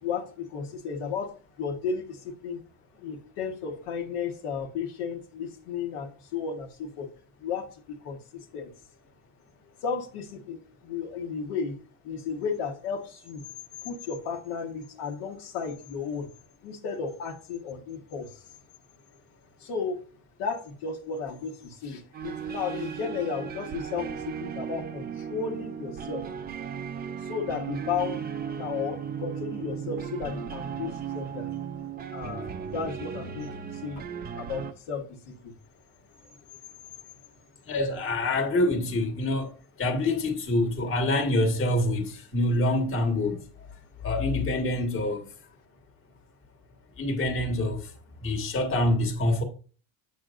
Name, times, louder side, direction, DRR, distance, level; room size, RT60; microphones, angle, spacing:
voice 1, 0.0-2.6 3.0-7.1 7.4-8.7 9.8-11.7 12.0-13.4 13.8-16.3 16.6-18.4 19.6-20.0 20.4-26.3 27.2-28.2 28.6-31.5 32.1-34.0 34.4-35.5, left 6 dB, 70° left, 1.4 m, -34 dB
sound 1, 22.1-34.7, right 7 dB, 25° right, 0.4 m, -36 dB
voice 2, 37.7-39.5 39.8-43.4 44.0-45.2 47.0-47.8 48.2-49.4, left 1 dB, 30° left, 1.5 m, -26 dB
7.8 x 6.3 x 2.5 m
cardioid pair, 130°, 42 cm